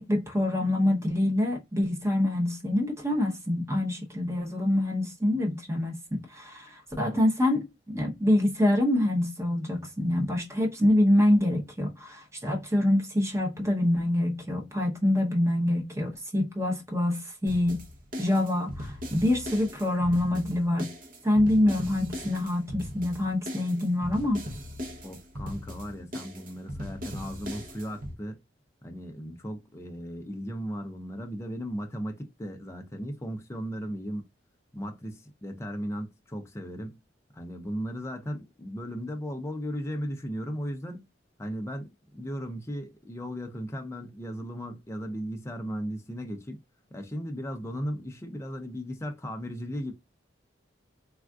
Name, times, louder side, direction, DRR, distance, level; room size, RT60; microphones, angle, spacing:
voice 1, 0.0-17.8 18.2-20.9 21.2-24.4, left 1 dB, 15° right, 0.7 m, -26 dB
sound 1, 17.5-28.2, equal, 45° right, 0.7 m, -39 dB
voice 2, 25.0-28.4 28.8-34.3 34.7-37.0 37.3-41.0 41.4-46.6 46.9-49.9, equal, 15° left, 0.5 m, -36 dB
3.4 x 2.4 x 2.3 m
head